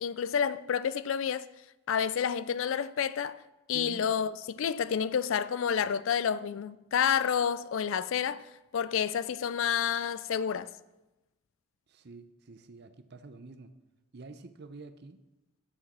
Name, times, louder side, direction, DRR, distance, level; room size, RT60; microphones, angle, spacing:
voice 1, 0.0-1.5 1.9-3.4 3.7-8.4 8.7-10.7, left 7 dB, 65° left, 0.4 m, -29 dB
voice 2, 3.7-4.1 11.9-13.7 14.1-15.2, right 3 dB, 50° right, 0.6 m, -48 dB
7.3 x 7.2 x 6.0 m
head